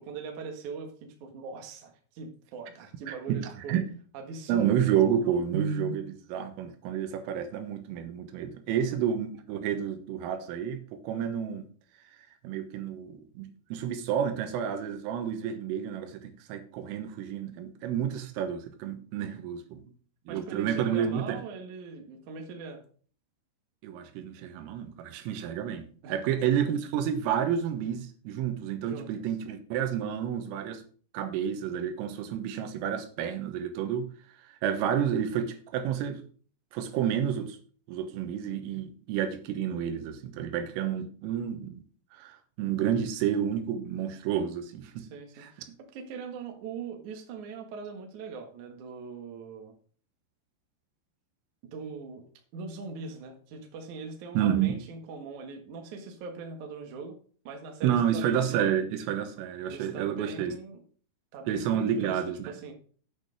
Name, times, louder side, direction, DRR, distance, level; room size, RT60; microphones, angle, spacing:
voice 1, 0.0-3.8 4.1-4.9 19.7-19.9 20.3-22.8 26.0-26.5 28.8-29.1 45.0-45.7 45.9-49.8 51.6-52.2 52.5-57.2 57.4-58.7 59.7-60.8 61.3-62.2 62.5-62.7, right 4 dB, 65° right, 2.0 m, -41 dB
voice 2, 3.1-3.9 4.5-11.7 12.4-19.8 20.3-21.4 23.8-30.8 31.1-34.1 34.6-36.2 36.7-37.6 37.9-41.8 42.1-45.0 45.4-45.8 54.4-54.8 57.8-60.6 61.5-62.5, right 9 dB, 90° right, 3.6 m, -30 dB
8.5 x 6.4 x 5.2 m
omnidirectional pair, 5.8 m